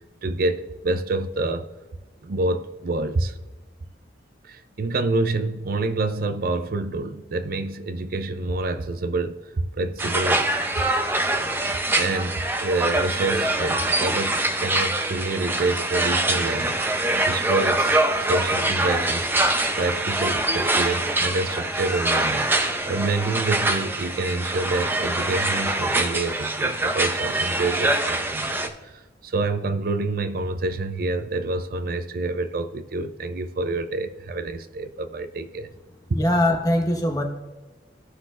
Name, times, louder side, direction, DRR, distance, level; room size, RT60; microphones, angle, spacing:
voice 1, 0.2-1.7 2.2-3.3 4.4-9.4 9.8-10.5 12.0-19.3 19.7-35.7, right 2 dB, 55° right, 0.5 m, -27 dB
sound 1, 10.0-28.7, right 2 dB, 10° right, 0.5 m, -24 dB
voice 2, 36.1-37.2, left 1 dB, 20° left, 0.9 m, -21 dB
15.5 x 5.8 x 2.4 m
head